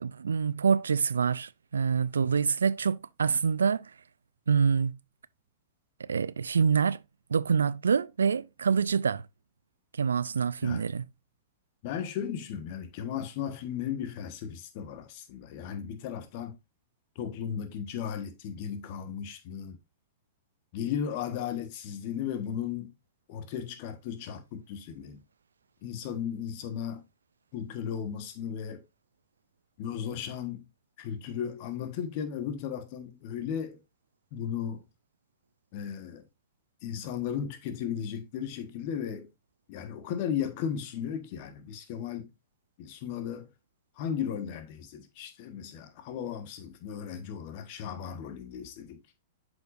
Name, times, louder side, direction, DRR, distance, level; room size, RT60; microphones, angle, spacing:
voice 1, 0.0-3.9 4.5-4.9 6.1-7.0 7.3-9.2 10.0-11.0, right 6 dB, 80° right, 0.3 m, -26 dB
voice 2, 11.8-16.5 17.1-19.8 20.7-22.9 23.3-25.2 25.8-27.0 27.5-28.8 29.8-30.7 31.0-33.8 34.3-34.8 35.7-36.2 36.8-39.3 39.7-42.3 42.8-43.5 44.0-49.0, left 8 dB, 50° left, 1.3 m, -35 dB
7.8 x 5.2 x 2.5 m
hypercardioid pair, 105°, 0 cm